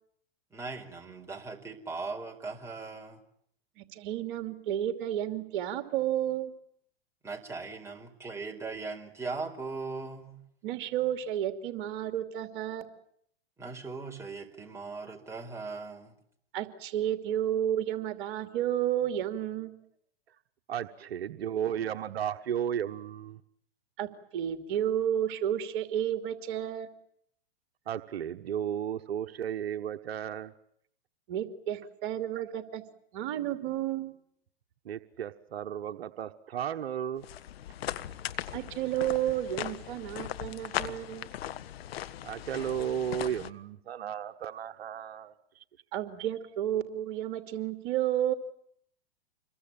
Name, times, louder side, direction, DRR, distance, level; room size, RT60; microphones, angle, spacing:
voice 1, 0.5-3.2 7.2-10.4 13.6-16.1, right 4 dB, 10° right, 1 dB, 4.7 m, -39 dB
voice 2, 3.8-6.5 10.6-12.9 16.5-19.7 24.0-26.9 31.3-32.8 33.1-34.1 38.5-41.3 45.9-48.3, right 11 dB, 55° right, 9 dB, 2.8 m, -31 dB
voice 3, 20.7-23.4 27.9-30.5 34.8-37.2 42.2-45.6, right 9 dB, 75° right, 7 dB, 1.3 m, -34 dB
sound 1, 37.2-43.5, left 12 dB, 70° left, 1.5 m, -38 dB
27.5 x 22.5 x 8.9 m, 0.69 s
hypercardioid pair, 125°, 31 cm